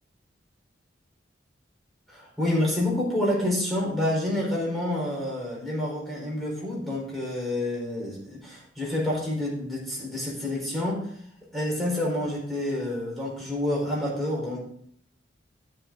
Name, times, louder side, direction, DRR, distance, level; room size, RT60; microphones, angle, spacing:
voice 1, 2.1-11.2 11.5-14.6, left 1 dB, ahead, -5 dB, 4.2 m, -28 dB
13.0 x 7.4 x 3.8 m, 0.63 s
head